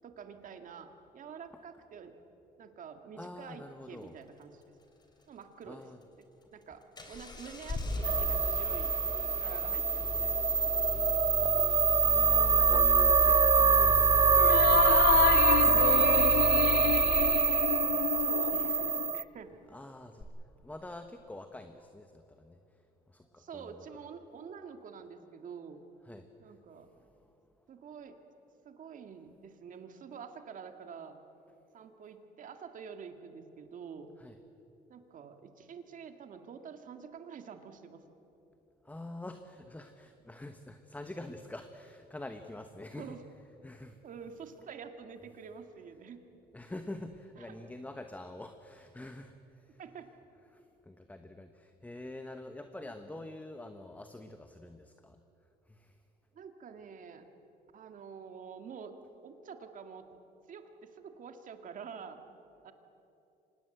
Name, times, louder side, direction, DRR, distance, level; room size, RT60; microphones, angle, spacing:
voice 1, 0.0-2.1 2.6-4.7 5.3-5.9 6.2-6.3 6.5-8.9 9.4-10.4 15.8-16.6 16.9-17.9 18.2-19.5 23.4-25.8 26.4-26.9 27.7-28.2 28.6-31.2 31.7-34.1 34.9-38.0 43.0-43.2 44.0-46.2 47.4-47.6 49.8-50.1 52.8-53.3 56.3-57.3 57.7-58.9 59.2-60.1 60.5-62.2 62.6-62.7, right 6 dB, 50° right, 7 dB, 2.1 m, -47 dB
voice 2, 3.2-4.2 5.7-6.0 10.9-11.5 12.0-15.2 19.7-20.3 20.6-22.6 23.1-23.8 26.1-26.3 27.0-27.1 34.2-34.4 38.8-43.1 43.6-44.0 46.5-49.3 50.5-50.6 50.9-55.2 55.7-55.9, left 1 dB, 10° left, 7 dB, 1.1 m, -46 dB
Engine starting, 7.0-17.6 20.2-20.3, left 2 dB, 25° left, 3.6 m, -36 dB
sound 1, 8.0-19.2, right 5 dB, 20° right, 0.5 m, -25 dB
sound 2, 14.3-19.1, left 13 dB, 70° left, 0.6 m, -30 dB
25.0 x 20.0 x 7.9 m, 2.9 s
cardioid pair, 110°, 17 cm